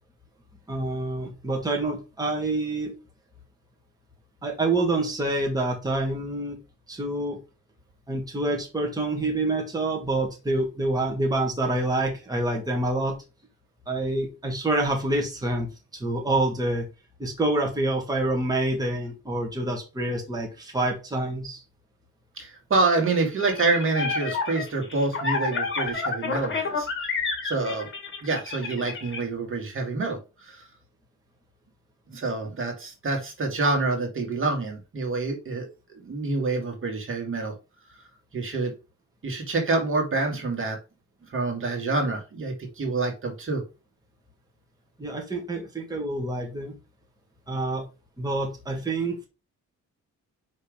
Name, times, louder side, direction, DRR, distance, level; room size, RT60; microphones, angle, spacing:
voice 1, 0.7-2.9 4.4-6.6 6.9-7.4 8.1-13.2 13.9-16.9 17.2-21.6 45.0-46.7 47.5-47.9 48.2-49.3, right 2 dB, 15° right, 0 dB, 1.8 m, -27 dB
voice 2, 22.4-26.9 27.4-27.9 28.2-30.6 32.1-35.7 36.0-37.5 38.3-38.7 39.2-40.8 41.3-43.6, right 3 dB, 45° right, 2 dB, 2.4 m, -27 dB
sound 1, 23.4-29.2, left 4 dB, 40° left, 2.4 m, -29 dB
5.2 x 4.2 x 5.2 m, 0.29 s
cardioid pair, 100°, 29 cm